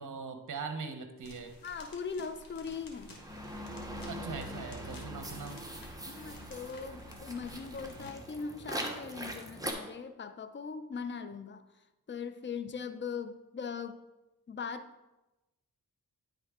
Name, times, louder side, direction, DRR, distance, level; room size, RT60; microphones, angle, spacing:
voice 1, 0.0-1.5 4.1-5.6, right 5 dB, 50° right, 7 dB, 0.9 m, -41 dB
sound 1, 1.2-8.1, left 2 dB, 55° left, 1.5 m, -53 dB
voice 2, 1.6-3.1 6.0-11.6 12.1-14.0 14.5-14.9, left 5 dB, 30° left, 10 dB, 0.5 m, -40 dB
sound 2, 2.8-9.7, right 1 dB, 10° right, 0.9 m, -42 dB
9.7 x 3.7 x 3.6 m, 1.0 s
cardioid pair, 60°, 39 cm